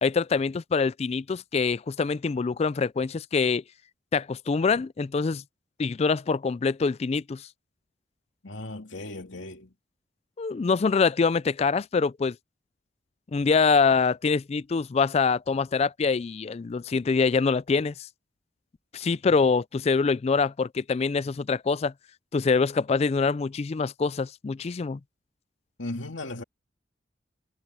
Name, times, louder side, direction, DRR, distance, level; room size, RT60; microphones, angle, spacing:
voice 1, 0.0-3.6 4.1-5.4 5.8-7.5 10.4-12.4 13.3-17.9 18.9-21.9 22.3-25.0, left 4 dB, 35° left, 0.3 m, -25 dB
voice 2, 8.4-9.7 25.8-26.4, left 2 dB, 80° left, 2.6 m, -36 dB
head